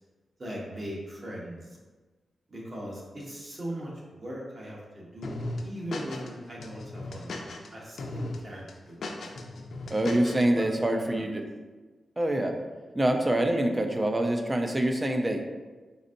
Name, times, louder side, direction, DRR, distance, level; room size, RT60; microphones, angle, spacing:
voice 1, 0.4-1.8 2.5-9.1 10.3-11.0, equal, 35° right, -4 dB, 1.0 m, -40 dB
sound 1, 5.2-6.3 6.6-7.7 8.0-8.4 8.7-10.4, left 2 dB, 75° left, 0.5 m, -37 dB
voice 2, 9.9-11.5 12.2-12.5 12.9-15.4, right 1 dB, 15° right, 4 dB, 0.4 m, -25 dB
4.3 x 4.0 x 2.5 m, 1.3 s
wide cardioid pair, 145°, 0 cm